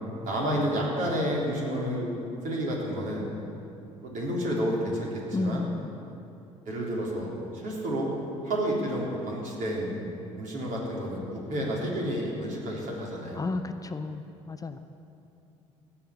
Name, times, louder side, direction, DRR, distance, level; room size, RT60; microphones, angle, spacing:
voice 1, 0.2-2.1 2.4-3.3 4.0-5.7 6.7-8.1 8.4-10.0 10.4-13.5, equal, 55° right, -3 dB, 3.7 m, -30 dB
voice 2, 5.3-5.9 13.4-14.8, left 3 dB, 20° left, 8 dB, 0.7 m, -32 dB
15.5 x 5.8 x 9.6 m, 2.7 s
hypercardioid pair, 60°, 16 cm